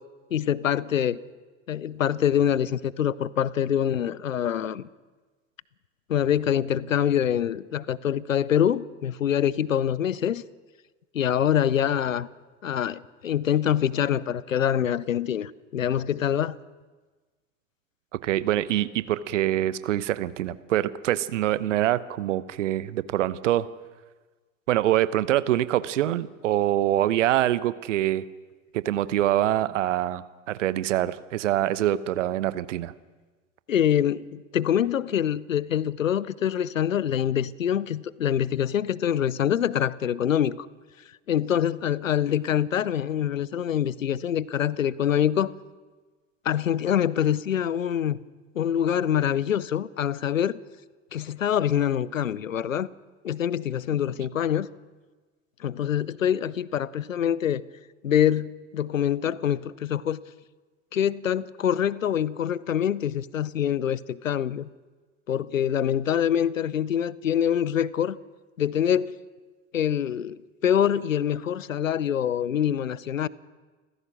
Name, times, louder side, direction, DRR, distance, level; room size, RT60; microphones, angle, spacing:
voice 1, 0.3-1.2 1.7-4.9 6.1-10.4 11.1-12.3 12.6-16.6 33.7-40.7 41.3-45.5 46.4-48.2 48.5-50.6 51.1-52.9 53.2-54.7 55.6-57.6 58.0-60.2 60.9-64.7 65.3-68.2 68.6-69.2 69.7-73.3, left 9 dB, 80° left, 0.7 m, -25 dB
voice 2, 18.2-23.7 24.7-28.2 28.7-32.9, right 13 dB, 70° right, 1.0 m, -25 dB
28.5 x 15.5 x 6.2 m
figure-of-eight pair, 70°, 39 cm